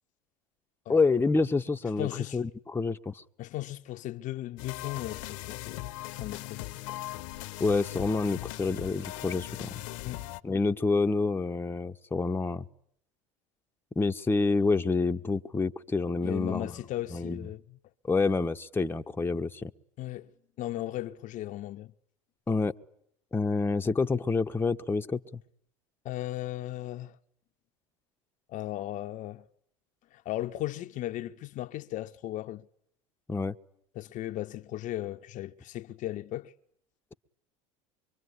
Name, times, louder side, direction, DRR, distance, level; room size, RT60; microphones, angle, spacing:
voice 1, 0.9-3.2 7.6-9.8 10.4-12.6 13.9-16.7 17.1-17.4 18.0-19.7 22.5-22.7 23.3-25.4 33.3-33.5, left 3 dB, 15° left, 1.2 m, -28 dB
voice 2, 2.0-2.4 3.4-5.9 6.2-7.0 7.4-7.6 10.0-10.3 16.2-17.8 20.0-20.3 20.6-21.9 26.0-27.2 28.5-29.4 30.1-32.7 33.9-36.5, left 14 dB, 50° left, 1.1 m, -36 dB
sound 1, 4.6-10.4, left 17 dB, 70° left, 1.3 m, -39 dB
24.5 x 24.0 x 9.8 m
hypercardioid pair, 90°, 17 cm